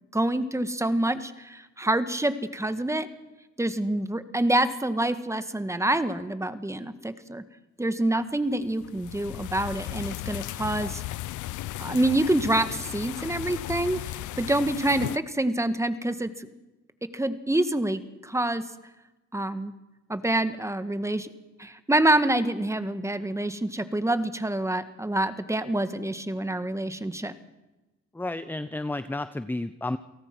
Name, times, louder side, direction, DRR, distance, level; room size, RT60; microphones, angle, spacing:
voice 1, 0.1-3.1 3.6-7.4 7.8-11.0 11.8-16.5 17.1-18.6 19.3-19.7 20.1-21.3 21.6-27.3, right 1 dB, 10° right, 11 dB, 1.6 m, -27 dB
sound 1, 8.6-15.2, left 15 dB, 80° left, 0.7 m, -36 dB
voice 2, 28.1-30.0, left 2 dB, 5° left, 13 dB, 0.7 m, -31 dB
29.0 x 18.5 x 6.1 m, 1.1 s
cardioid pair, 90°, 30 cm